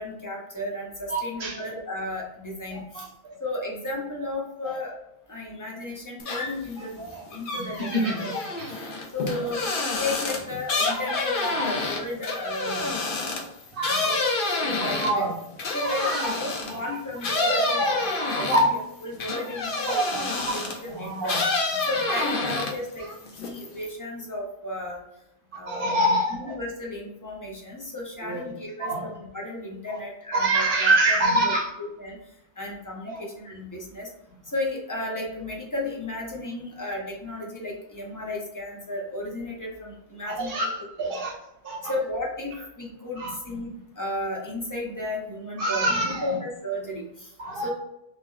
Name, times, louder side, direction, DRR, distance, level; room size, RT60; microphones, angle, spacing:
voice 1, 0.0-3.1 3.4-4.9 5.3-6.9 7.3-8.4 9.1-12.9 14.0-14.2 14.5-15.3 15.7-17.8 18.4-21.4 21.9-25.0 25.5-26.0 26.3-31.1 31.4-32.2 32.6-34.1 34.5-40.5 41.0-41.1 41.8-47.3 47.6-47.7, left 1 dB, 20° left, -3 dB, 0.7 m, -34 dB
voice 2, 1.1-1.6 2.7-3.1 7.0-7.2 7.6-8.2 8.6-8.7 11.4-11.7 12.8-12.9 13.7-14.2 14.7-15.3 15.8-16.3 16.7-16.8 17.4-18.7 19.8-20.4 20.9-21.4 22.1-22.3 25.7-26.4 28.2-28.5 28.8-29.1 29.9-30.0 30.3-31.7 33.0-33.2 40.3-41.4 41.6-41.9 43.2-43.4 45.6-46.4 47.4-47.7, right 1 dB, 55° right, -1 dB, 0.9 m, -26 dB
sound 1, 6.2-6.7 7.1-16.8 17.2-20.9 21.2-22.9 23.3-23.9, left 3 dB, 55° left, 0.7 m, -28 dB
3.0 x 2.1 x 3.6 m, 0.85 s
omnidirectional pair, 1.1 m